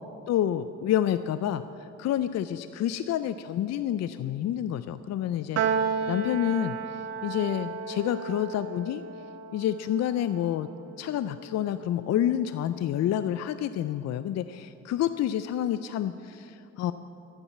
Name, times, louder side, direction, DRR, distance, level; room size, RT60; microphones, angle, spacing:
voice 1, 0.3-9.0 9.5-10.7 11.0-16.9, left 10 dB, 60° left, 12 dB, 0.4 m, -29 dB
Piano, 5.6-12.1, right 6 dB, 55° right, 0.8 m, -33 dB
12.0 x 8.7 x 8.3 m, 2.7 s
cardioid pair, 90°, 30 cm